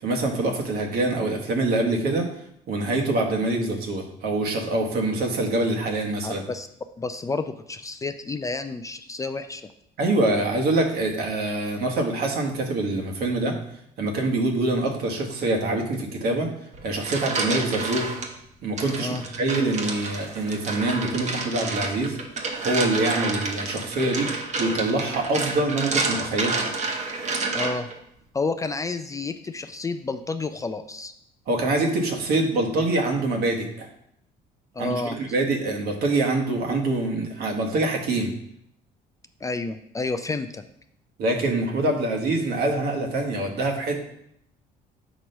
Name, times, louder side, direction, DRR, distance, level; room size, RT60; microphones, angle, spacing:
voice 1, 0.0-2.3 2.7-6.4 10.0-13.6 14.0-16.5 16.8-18.1 18.6-22.2 22.6-26.6 31.5-33.9 34.8-38.3 41.2-44.0, right 2 dB, 65° right, 1 dB, 1.2 m, -25 dB
voice 2, 6.2-6.7 7.0-9.6 19.0-19.2 27.5-27.9 28.3-31.1 34.7-35.2 39.4-40.6, left 3 dB, 20° left, 8 dB, 0.3 m, -30 dB
sound 1, 16.7-18.3 18.8-28.0, right 3 dB, 45° right, 1.0 m, -29 dB
6.0 x 3.0 x 5.3 m, 0.74 s
cardioid pair, 110°, 17 cm